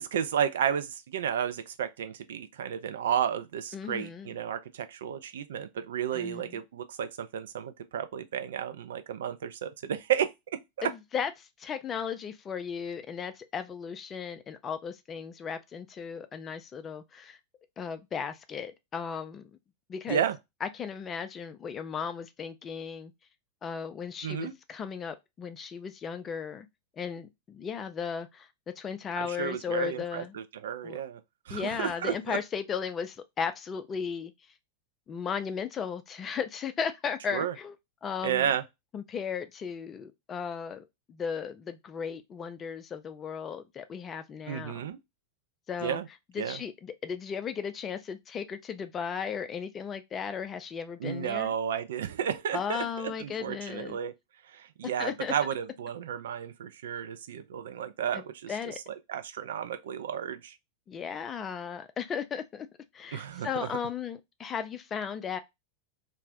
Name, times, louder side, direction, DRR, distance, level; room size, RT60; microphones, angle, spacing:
voice 1, 0.0-10.9 20.1-20.4 24.2-24.5 29.2-31.2 31.5-32.4 37.3-37.5 38.2-38.6 44.5-45.0 45.8-46.1 46.4-46.6 51.0-54.1 54.5-58.5 59.1-60.5 63.1-63.7, right 9 dB, 60° right, 0.3 m, -32 dB
voice 2, 3.7-4.3 6.1-6.6 10.8-17.4 17.8-19.5 19.9-20.3 20.6-23.1 23.6-26.7 27.0-28.5 28.8-30.4 30.8-31.0 31.5-34.3 35.1-37.7 38.0-38.5 38.9-44.9 45.7-46.0 46.3-51.5 52.5-54.0 55.0-55.3 58.1-58.8 60.9-62.7 62.9-65.4, left 7 dB, 25° left, 0.3 m, -36 dB
2.5 x 2.0 x 3.4 m
figure-of-eight pair, 90°, 0 cm